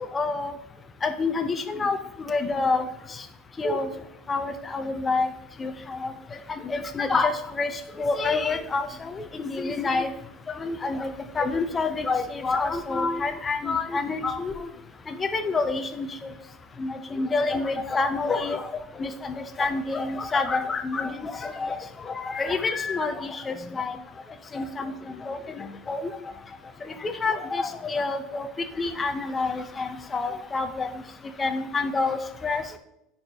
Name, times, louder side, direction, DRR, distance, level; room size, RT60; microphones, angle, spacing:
voice 1, 0.1-0.5 1.0-2.0 2.3-2.8 3.6-3.9 4.3-5.3 5.6-6.1 6.6-10.1 10.5-11.1 11.4-14.7 15.1-16.3 16.8-18.7 19.0-24.0 24.5-26.1 27.0-28.5 28.8-30.9 31.4-32.6, left 3 dB, 15° left, 6 dB, 0.5 m, -28 dB
10.0 x 4.3 x 3.3 m, 0.83 s
cardioid pair, 165°, 0 cm